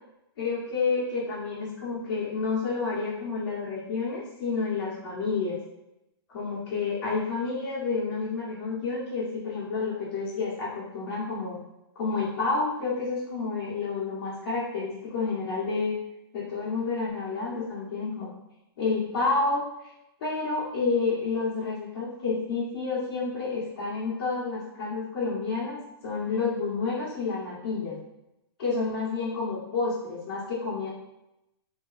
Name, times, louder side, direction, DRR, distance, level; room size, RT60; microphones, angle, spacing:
voice 1, 0.4-5.6 6.3-11.5 11.9-15.9 16.3-18.3 18.8-19.9 20.2-28.0 28.6-30.9, left 4 dB, 65° left, -9 dB, 1.4 m, -29 dB
3.5 x 2.0 x 4.1 m, 0.90 s
hypercardioid pair, 145°, 14 cm